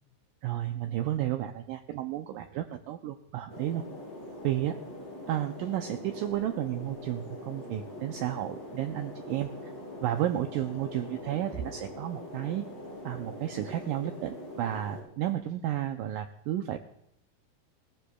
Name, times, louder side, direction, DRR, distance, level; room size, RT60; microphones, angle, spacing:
voice 1, 0.4-3.8 4.4-4.7 5.3-9.5 10.0-12.7 13.0-16.8, right 12 dB, 90° right, 6 dB, 1.9 m, -32 dB
sound 1, 3.5-15.0, left 1 dB, 15° right, 5.2 m, -43 dB
19.5 x 14.5 x 2.3 m, 0.76 s
omnidirectional pair, 4.5 m